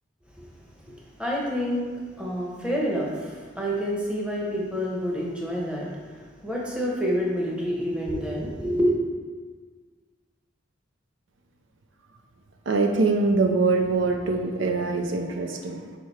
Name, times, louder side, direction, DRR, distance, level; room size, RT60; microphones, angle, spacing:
voice 1, 0.9-8.9, equal, 5° right, -3 dB, 0.9 m, -28 dB
voice 2, 12.7-15.9, right 3 dB, 70° right, 4 dB, 0.5 m, -23 dB
5.1 x 4.6 x 4.3 m, 1.5 s
head